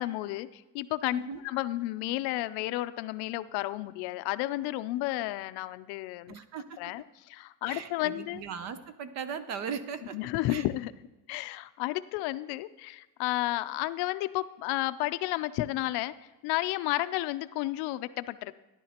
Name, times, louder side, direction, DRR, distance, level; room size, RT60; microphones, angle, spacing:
voice 1, 0.0-6.4 6.8-8.4 10.1-10.9 11.3-18.5, left 17 dB, 65° left, 14 dB, 0.5 m, -32 dB
voice 2, 6.3-6.8 7.7-10.2 10.5-10.6, right 6 dB, 40° right, 12 dB, 0.6 m, -38 dB
13.5 x 11.0 x 2.9 m, 1.1 s
cardioid pair, 170°, 41 cm